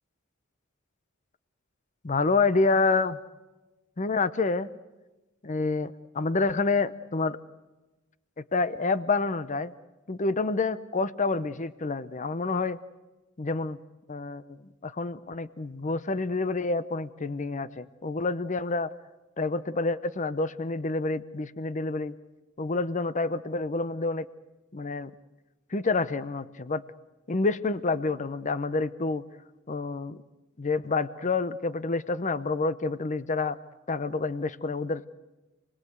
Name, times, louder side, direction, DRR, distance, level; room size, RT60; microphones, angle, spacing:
voice 1, 2.0-3.2 4.0-4.7 5.4-7.4 8.4-9.7 10.1-12.8 13.4-13.8 14.1-14.6 14.8-18.9 19.4-22.2 22.6-24.3 24.7-25.1 25.7-26.8 27.3-29.2 29.7-30.2 30.6-33.6 33.9-35.1, left 3 dB, 35° left, 15 dB, 0.7 m, -28 dB
28.0 x 20.0 x 8.0 m, 1.1 s
head